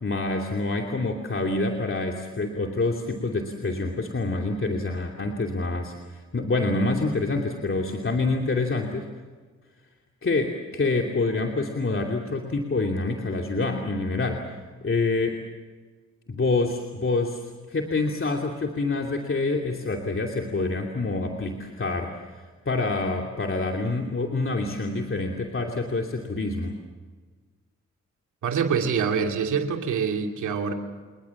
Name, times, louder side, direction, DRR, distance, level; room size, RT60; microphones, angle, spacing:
voice 1, 0.0-9.1 10.2-14.4 14.8-15.4 16.3-26.7, left 3 dB, 45° left, 1 dB, 2.9 m, -27 dB
voice 2, 28.4-30.7, right 6 dB, 85° right, 4 dB, 2.5 m, -25 dB
30.0 x 20.0 x 7.3 m, 1.4 s
supercardioid pair, 45°, 29 cm